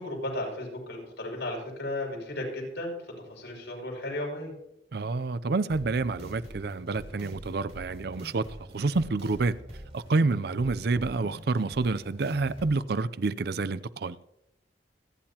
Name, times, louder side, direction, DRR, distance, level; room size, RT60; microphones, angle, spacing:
voice 1, 0.0-3.0 3.3-4.5, left 1 dB, 70° left, 6.1 m, -34 dB
voice 2, 4.9-8.4 8.7-9.6 9.9-14.2, right 3 dB, 60° right, 0.5 m, -28 dB
sound 1, 5.7-12.7, equal, 35° right, 4.2 m, -45 dB
27.0 x 10.5 x 2.9 m
head